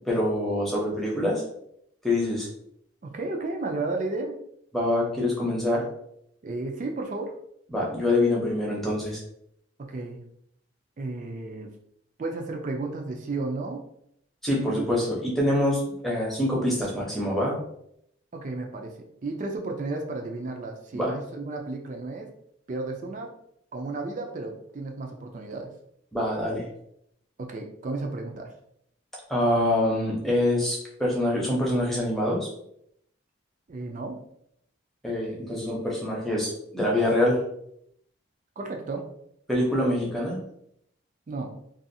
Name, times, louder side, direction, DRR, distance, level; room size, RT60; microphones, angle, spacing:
voice 1, 0.0-1.4 2.0-2.5 4.7-5.8 7.7-9.2 14.4-17.6 20.9-21.1 26.1-26.7 29.3-32.5 35.0-37.4 39.5-40.4, left 1 dB, ahead, -4 dB, 0.6 m, -25 dB
voice 2, 3.0-4.4 6.4-7.4 9.8-10.2 11.0-11.7 12.2-13.8 14.6-14.8 18.3-22.3 22.7-23.3 23.7-25.7 27.4-28.5 33.7-34.2 38.6-39.1 41.3-41.5, right 3 dB, 40° right, 2 dB, 0.3 m, -33 dB
2.6 x 2.4 x 2.6 m, 0.71 s
head